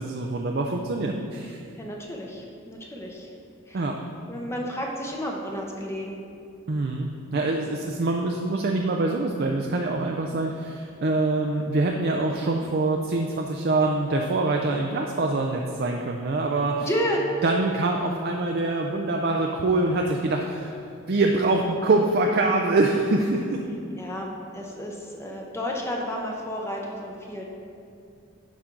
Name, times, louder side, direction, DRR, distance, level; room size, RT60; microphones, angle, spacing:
voice 1, 0.0-1.6 3.7-4.0 6.7-16.9 17.4-20.8 21.1-23.6, right 2 dB, 45° right, 1 dB, 0.5 m, -24 dB
voice 2, 1.8-3.3 3.7-3.8 4.3-6.2 16.8-17.2 24.0-27.4, equal, 10° left, -1 dB, 0.7 m, -31 dB
10.5 x 5.9 x 3.8 m, 2.4 s
head